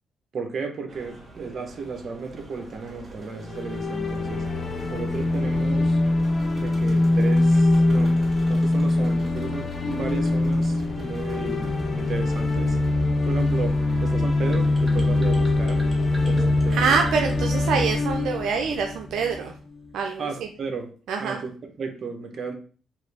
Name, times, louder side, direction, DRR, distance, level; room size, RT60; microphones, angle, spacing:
voice 1, 0.3-4.4 4.9-6.0 6.5-8.2 8.5-12.8 13.3-15.9 16.2-17.0 20.2-20.9 21.2-21.5 21.8-22.5, right 4 dB, 50° right, 5 dB, 1.0 m, -34 dB
sound 1, 0.9-17.0, right 2 dB, 30° right, 2.0 m, -45 dB
sound 2, 3.4-19.5, left 2 dB, 40° left, 0.7 m, -23 dB
sound 3, 14.5-18.4, right 2 dB, 10° right, 1.4 m, -38 dB
voice 2, 16.7-19.5 19.9-20.3 21.1-21.4, right 5 dB, 80° right, 3 dB, 0.5 m, -25 dB
5.4 x 2.6 x 3.4 m, 0.40 s
cardioid pair, 90°, 0 cm